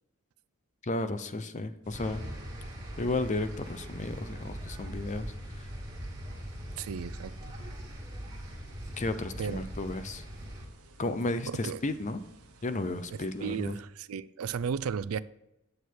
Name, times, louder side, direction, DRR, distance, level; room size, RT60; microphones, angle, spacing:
voice 1, 0.8-2.2 3.0-5.7 9.0-10.2 11.0-12.2 12.6-13.8, left 2 dB, 35° left, 0.6 m, -33 dB
sound 1, 1.8-13.8, right 2 dB, 85° right, 1.1 m, -57 dB
sound 2, 1.9-10.6, equal, 15° right, 2.0 m, -41 dB
voice 2, 6.8-7.5 9.4-9.7 11.5-11.8 13.1-15.2, right 6 dB, 70° right, 0.4 m, -35 dB
9.2 x 6.4 x 4.5 m
head